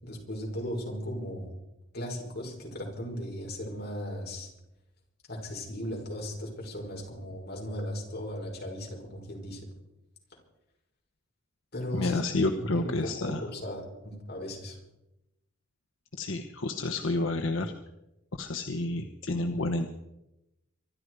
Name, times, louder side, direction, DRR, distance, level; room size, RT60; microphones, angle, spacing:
voice 1, 0.0-1.5 1.9-4.5 5.3-9.6 11.7-14.8, equal, 55° left, -1 dB, 5.8 m, -37 dB
voice 2, 11.9-13.4 16.1-17.7 18.4-19.9, left 2 dB, 80° left, 5 dB, 1.0 m, -30 dB
24.5 x 12.0 x 4.9 m, 0.91 s
head